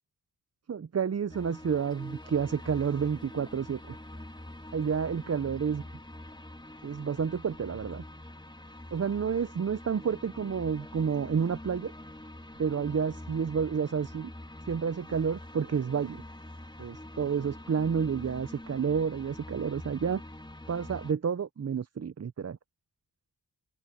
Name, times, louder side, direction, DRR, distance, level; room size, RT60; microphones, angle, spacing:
voice 1, 0.7-4.0 4.7-5.8 6.8-8.0 8.9-11.9 12.6-14.3 14.7-16.2 16.8-20.2 20.7-22.6, right 6 dB, 40° right, 0.7 m, -30 dB
sound 1, 1.3-21.1, left 1 dB, 10° left, 2.9 m, -45 dB
cardioid pair, 50°, 39 cm